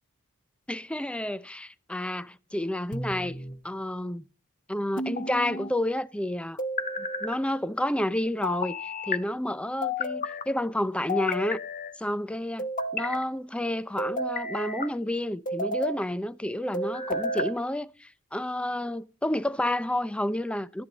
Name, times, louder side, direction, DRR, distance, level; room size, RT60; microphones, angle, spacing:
voice 1, 0.7-3.4 3.6-4.3 4.7-6.6 7.0-11.6 12.0-12.7 12.9-20.8, left 1 dB, 5° left, 0.5 m, -30 dB
sound 1, 2.9-3.6 5.0-5.7 6.6-7.4 8.4-9.2 9.8-10.5 11.1-11.9 12.6-13.2 14.0-14.9 15.5-16.0 16.7-17.6, left 2 dB, 40° left, 1.1 m, -31 dB
14.0 x 9.5 x 3.9 m
head